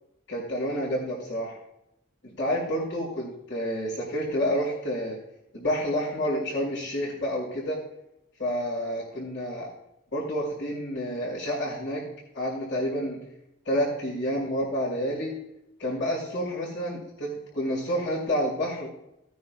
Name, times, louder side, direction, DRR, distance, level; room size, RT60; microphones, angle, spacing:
voice 1, 0.3-1.6 2.2-5.2 5.5-7.8 8.4-9.7 10.1-12.1 12.3-13.2 13.6-15.3 15.8-18.9, equal, 60° left, -11 dB, 5.0 m, -29 dB
19.5 x 9.3 x 2.3 m, 0.84 s
head